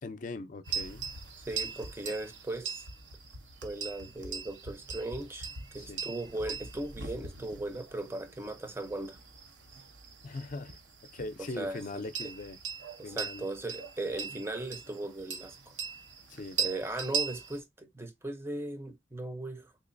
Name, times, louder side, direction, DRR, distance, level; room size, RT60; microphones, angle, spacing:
voice 1, 0.0-1.1 5.8-6.0 10.2-10.8 11.1-12.6 13.0-13.4 16.3-16.6, left 2 dB, 45° left, 0.5 m, -40 dB
sound 1, 0.7-17.6, right 5 dB, 90° right, 0.9 m, -40 dB
voice 2, 1.5-2.8 3.6-5.5 5.7-9.2 11.4-12.0 13.0-15.7 16.6-19.9, right 2 dB, 15° right, 0.6 m, -38 dB
3.8 x 3.0 x 2.5 m
head